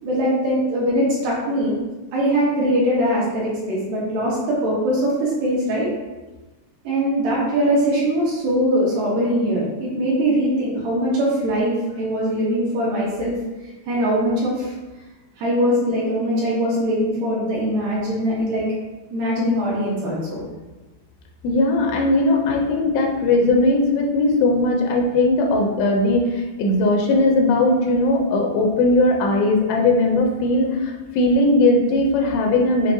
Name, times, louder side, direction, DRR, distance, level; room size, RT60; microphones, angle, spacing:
voice 1, 0.0-1.8 2.1-5.9 6.8-13.4 13.9-14.7 15.4-18.7 19.1-20.4, equal, 70° right, -6 dB, 2.4 m, -21 dB
voice 2, 21.4-32.9, left 2 dB, 90° left, 1 dB, 2.6 m, -18 dB
6.9 x 2.6 x 2.6 m, 1.1 s
omnidirectional pair, 4.3 m